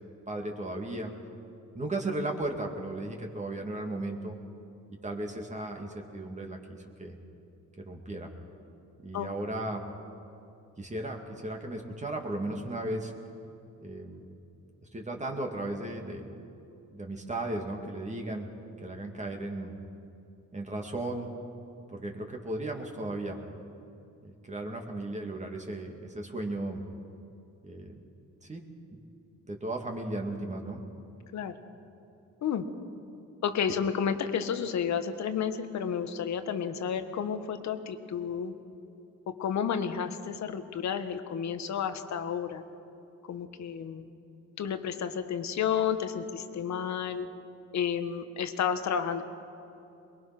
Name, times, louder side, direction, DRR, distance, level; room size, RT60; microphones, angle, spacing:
voice 1, 0.3-1.1 1.7-4.4 4.9-7.2 7.8-8.3 9.0-9.8 10.8-13.1 13.8-14.2 14.9-16.3 16.9-18.5 18.8-19.7 20.5-21.3 21.9-23.4 24.2-26.8 27.6-27.9 28.4-28.6 28.9-29.0 29.5-30.8, right 1 dB, 25° right, 2 dB, 2.4 m, -35 dB
voice 2, 33.4-38.6 39.3-42.6 43.3-44.1 44.6-47.3 47.7-49.2, left 7 dB, 65° left, 9 dB, 1.5 m, -31 dB
22.5 x 21.5 x 6.1 m, 2.7 s
cardioid pair, 90°, 30 cm